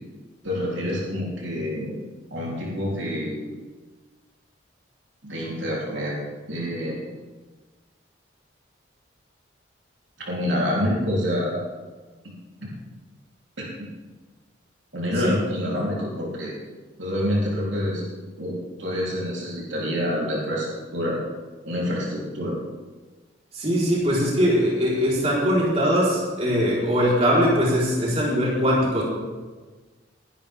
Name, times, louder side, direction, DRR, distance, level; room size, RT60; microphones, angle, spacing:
voice 1, 0.4-1.9 2.3-3.5 5.2-6.1 6.5-7.1 10.2-11.6 12.6-12.7 13.6-13.7 14.9-16.5 17.0-18.0 18.4-20.7 20.9-21.2 21.6-22.6, equal, 75° right, -5 dB, 3.6 m, -27 dB
voice 2, 23.5-29.0, equal, 35° right, -6 dB, 4.3 m, -21 dB
21.0 x 11.0 x 3.6 m, 1.3 s
head